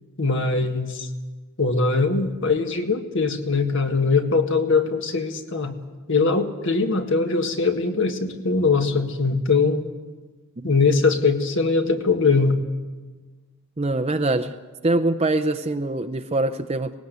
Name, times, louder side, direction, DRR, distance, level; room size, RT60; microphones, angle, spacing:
voice 1, 0.2-1.1 1.6-5.7 6.1-9.8 10.6-12.6, left 4 dB, 60° left, 5 dB, 1.8 m, -21 dB
voice 2, 13.8-14.6 14.8-16.9, right 2 dB, 30° right, 8 dB, 0.6 m, -23 dB
19.5 x 18.5 x 8.1 m, 1.3 s
head